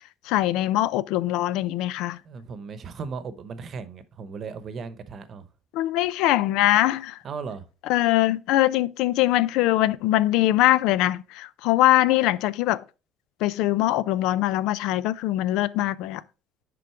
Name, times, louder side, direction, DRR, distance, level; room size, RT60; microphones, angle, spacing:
voice 1, 0.2-2.2 5.7-7.2 7.9-12.8 13.4-16.2, left 15 dB, 75° left, 0.5 m, -22 dB
voice 2, 2.2-5.4 7.2-7.7, right 5 dB, 40° right, 0.9 m, -36 dB
10.5 x 3.9 x 4.5 m
cardioid pair, 135°, 0 cm